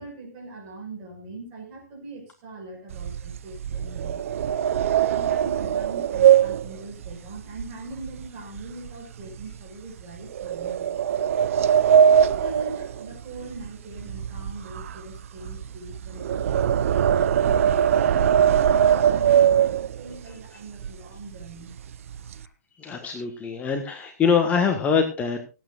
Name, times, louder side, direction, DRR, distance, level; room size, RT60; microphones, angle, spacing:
voice 1, 0.0-4.2 5.1-11.0 12.4-21.7, right 2 dB, 35° right, 2 dB, 5.8 m, -41 dB
sound 1, 2.9-8.3 8.6-8.9 9.4-9.5 10.4-13.7 13.9-20.2 20.8-20.9 21.2-21.5 21.8-22.4, right 9 dB, 55° right, 0.6 m, -21 dB
voice 2, 22.8-25.4, left 6 dB, 15° left, 4 dB, 1.4 m, -23 dB
25.5 x 8.7 x 2.5 m, 0.29 s
figure-of-eight pair, 125°, 9 cm